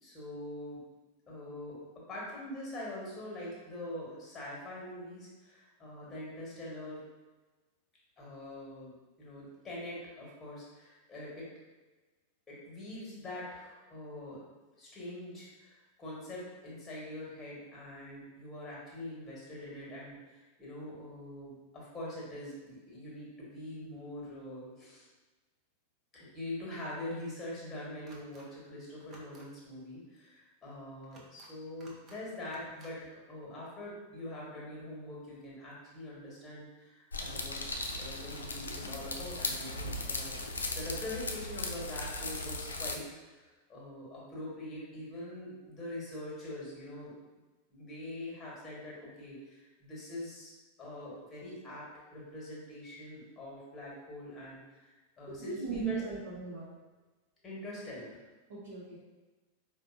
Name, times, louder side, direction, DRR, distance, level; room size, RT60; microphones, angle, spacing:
voice 1, 0.0-0.8 1.3-1.8 2.1-7.0 8.2-11.5 12.5-14.4 14.8-25.1 26.1-37.6 37.9-47.1 47.7-50.5 50.8-56.0 57.4-58.2, left 1 dB, 15° left, -5 dB, 1.3 m, -44 dB
sound 1, 28.1-28.4 29.0-29.4 31.0-31.5 31.8-32.2 32.4-32.9, right 2 dB, 25° right, 0.7 m, -56 dB
sound 2, 37.1-43.0, left 2 dB, 75° left, 0.3 m, -37 dB
voice 2, 55.2-56.7 58.5-59.0, right 5 dB, 60° right, -8 dB, 0.8 m, -38 dB
4.5 x 2.2 x 2.5 m, 1.2 s
figure-of-eight pair, 90°, 0 cm